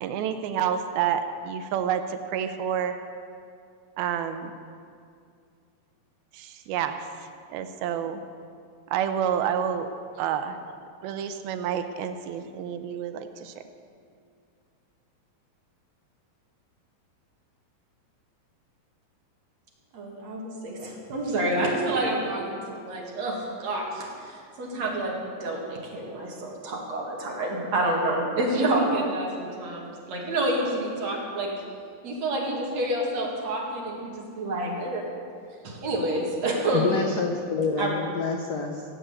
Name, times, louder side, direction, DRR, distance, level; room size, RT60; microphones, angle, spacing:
voice 1, 0.0-2.9 4.0-4.5 6.3-7.1 7.5-8.2 8.9-9.9 10.2-10.6 11.0-13.5, right 8 dB, 80° right, 8 dB, 2.5 m, -29 dB
voice 2, 19.9-31.5 32.0-35.1 35.6-36.9 37.8-37.9, right 1 dB, 50° right, -2 dB, 3.1 m, -28 dB
voice 3, 36.7-38.8, left 5 dB, 80° left, 2 dB, 1.4 m, -27 dB
16.5 x 7.9 x 8.2 m, 2.3 s
omnidirectional pair, 4.4 m